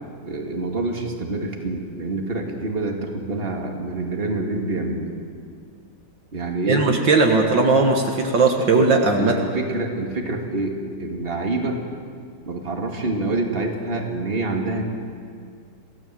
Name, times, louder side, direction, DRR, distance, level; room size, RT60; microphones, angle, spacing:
voice 1, 0.2-5.1 6.3-6.9 9.2-11.8 12.4-14.8, right 2 dB, 25° right, 1 dB, 2.5 m, -26 dB
voice 2, 6.7-9.3, right 3 dB, 65° right, 2 dB, 2.3 m, -18 dB
27.5 x 17.5 x 7.8 m, 2.1 s
omnidirectional pair, 2.2 m